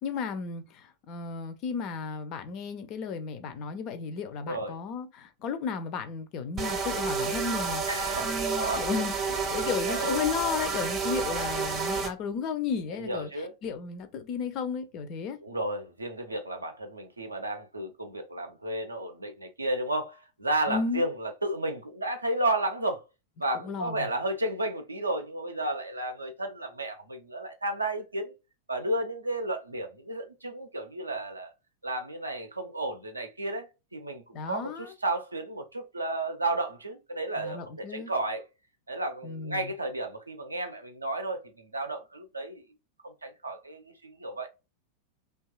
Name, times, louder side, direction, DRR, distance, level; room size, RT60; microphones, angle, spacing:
voice 1, 0.0-7.8 8.2-15.4 20.7-21.0 23.5-24.1 34.3-34.9 37.4-38.1 39.2-39.7, left 6 dB, 40° left, 0.4 m, -34 dB
sound 1, 6.6-12.1, right 5 dB, 25° right, 0.6 m, -30 dB
voice 2, 7.8-9.0 9.5-10.2 11.1-11.3 12.9-13.5 15.4-23.0 23.4-28.3 28.7-31.5 31.8-38.4 38.9-42.6 43.0-44.5, right 1 dB, 80° right, 0.5 m, -33 dB
2.7 x 2.2 x 2.3 m
figure-of-eight pair, 90°, 0 cm